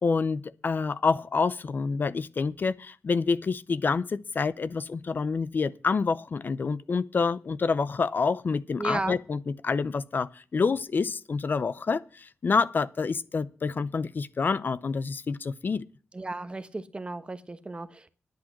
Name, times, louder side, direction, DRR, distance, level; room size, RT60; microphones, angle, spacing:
voice 1, 0.0-15.8, left 4 dB, 55° left, 0.6 m, -27 dB
voice 2, 8.8-9.2 16.1-18.1, right 2 dB, 25° right, 1.1 m, -34 dB
10.5 x 8.6 x 7.3 m
wide cardioid pair, 95°, 4 cm